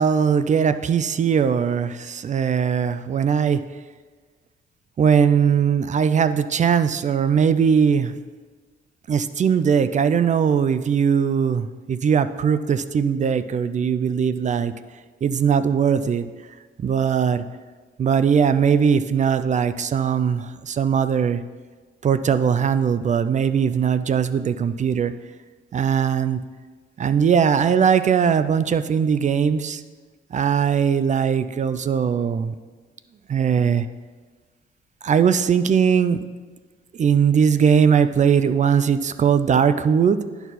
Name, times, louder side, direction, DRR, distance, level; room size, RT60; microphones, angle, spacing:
voice 1, 0.0-3.6 5.0-8.1 9.1-14.7 15.2-16.3 16.8-17.4 18.0-21.4 22.0-25.1 25.7-26.4 27.0-29.8 30.3-32.5 33.3-33.9 35.0-36.2 37.0-40.2, right 7 dB, 40° right, 12 dB, 0.4 m, -20 dB
10.5 x 4.6 x 4.1 m, 1.4 s
cardioid pair, 90°, 20 cm